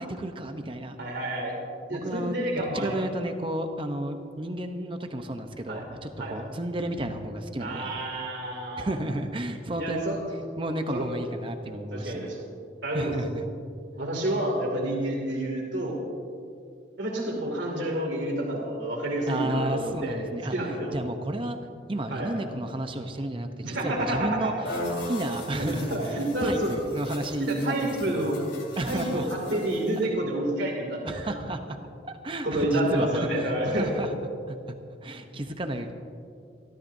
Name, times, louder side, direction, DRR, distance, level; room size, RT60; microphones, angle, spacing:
voice 1, 0.0-1.0 1.9-7.9 8.8-10.1 10.6-12.3 12.9-13.5 19.3-21.6 21.9-24.8 25.1-28.2 28.8-29.4 31.0-31.6 32.0-34.2 34.5-34.6 35.0-35.9, right 1 dB, 30° right, 6 dB, 0.7 m, -32 dB
voice 2, 1.0-1.6 1.9-3.0 5.7-5.8 6.2-6.3 7.6-8.9 9.8-10.2 10.9-11.1 11.9-12.4 12.8-13.1 13.9-16.0 17.0-20.2 20.5-20.9 22.1-22.3 23.6-24.5 25.6-26.7 27.4-28.4 28.9-31.4 32.4-33.9 35.3-35.4, right 1 dB, 75° right, -1 dB, 2.5 m, -29 dB
sound 1, 24.7-30.1, left 1 dB, 65° left, 2.9 m, -39 dB
26.5 x 13.0 x 2.7 m, 2.4 s
head